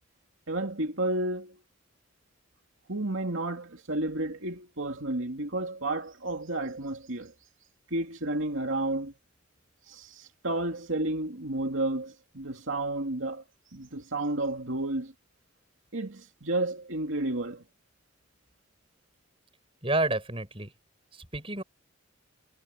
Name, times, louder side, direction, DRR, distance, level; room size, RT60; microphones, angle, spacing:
voice 1, 0.5-1.6 2.9-7.3 7.9-9.1 9.9-13.4 13.7-15.1 15.9-17.6, right 2 dB, 70° right, 2.5 m, -31 dB
voice 2, 19.8-20.7 21.1-21.6, right 2 dB, 25° right, 6.3 m, -29 dB
head